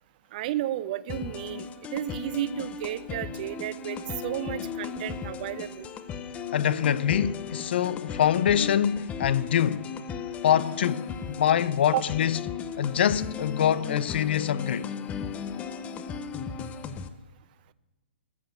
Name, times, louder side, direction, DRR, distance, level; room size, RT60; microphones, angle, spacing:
voice 1, 0.3-5.9 11.9-12.0, right 13 dB, 45° right, 0.6 m, -32 dB
sound 1, 1.1-17.1, left 6 dB, 20° left, 0.7 m, -36 dB
voice 2, 6.5-9.9 10.4-12.4 12.8-14.9, left 9 dB, 60° left, 0.6 m, -24 dB
14.0 x 6.8 x 9.1 m
hypercardioid pair, 130°, 6 cm